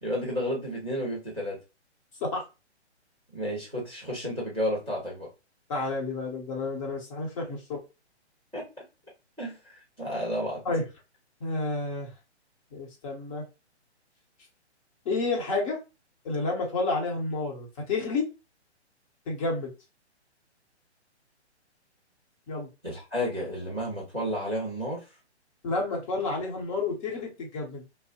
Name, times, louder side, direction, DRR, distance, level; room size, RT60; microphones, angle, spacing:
voice 1, 0.0-1.6 3.3-5.3 8.5-8.6 9.4-10.6 22.8-25.0, equal, ahead, -18 dB, 0.4 m, -31 dB
voice 2, 5.7-7.8 10.6-10.8 11.4-12.1 12.7-13.4 15.0-15.8 16.2-18.3 19.3-19.7 22.5-22.7 25.6-27.8, left 3 dB, 30° left, -1 dB, 0.9 m, -30 dB
2.8 x 2.0 x 2.7 m, 0.27 s
hypercardioid pair, 140°, 35 cm